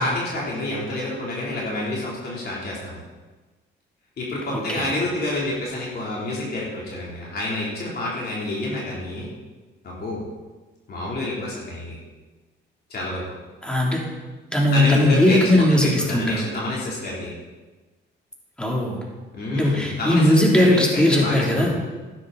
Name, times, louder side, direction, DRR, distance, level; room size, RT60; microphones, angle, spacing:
voice 1, 0.0-3.0 4.2-9.3 9.8-10.2 10.9-12.0 12.9-13.2 14.7-17.3 19.3-21.7, left 1 dB, 55° left, -5 dB, 3.6 m, -28 dB
voice 2, 4.5-4.9 13.6-14.0 14.5-16.5 18.6-19.0 19.5-21.7, left 1 dB, 5° left, -2 dB, 3.3 m, -19 dB
12.5 x 10.0 x 4.2 m, 1.2 s
cardioid pair, 90°, 20 cm